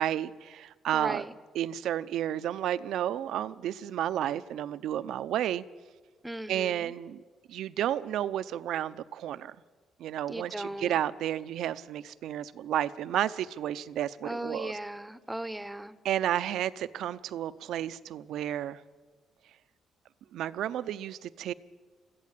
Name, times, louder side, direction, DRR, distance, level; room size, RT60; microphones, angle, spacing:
voice 1, 0.0-1.2 1.5-5.6 6.5-7.2 7.5-9.6 10.0-14.8 16.0-18.8 20.3-21.5, right 11 dB, 80° right, 15 dB, 0.6 m, -32 dB
voice 2, 0.9-1.3 6.2-6.9 10.3-11.0 14.2-16.0, right 1 dB, 10° right, 15 dB, 1.0 m, -37 dB
22.0 x 14.5 x 8.4 m, 1.5 s
cardioid pair, 90°, 0 cm